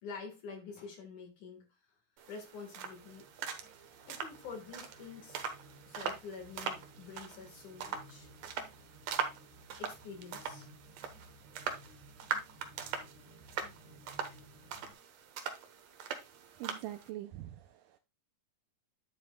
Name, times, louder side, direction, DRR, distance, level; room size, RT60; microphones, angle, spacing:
voice 1, 0.0-1.7 2.3-3.5 4.1-5.5 5.9-8.3 9.8-10.7, left 5 dB, 65° left, 3.0 m, -47 dB
sound 1, 2.2-17.1, right 7 dB, 65° right, 2.0 m, -42 dB
sound 2, 2.8-14.9, equal, 15° right, 2.1 m, -58 dB
voice 2, 16.6-18.0, right 14 dB, 80° right, 2.2 m, -44 dB
11.0 x 7.6 x 2.3 m
omnidirectional pair, 3.9 m